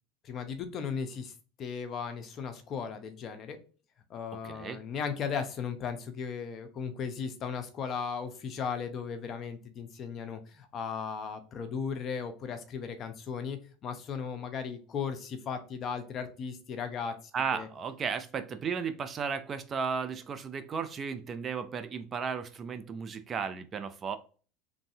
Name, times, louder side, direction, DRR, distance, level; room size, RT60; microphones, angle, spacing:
voice 1, 0.2-1.3 1.6-3.6 4.1-17.7, left 6 dB, 40° left, 8 dB, 0.6 m, -36 dB
voice 2, 4.3-4.8 17.3-24.2, right 6 dB, 30° right, 11 dB, 0.3 m, -34 dB
3.1 x 2.5 x 2.6 m, 0.37 s
supercardioid pair, 115°, 0 cm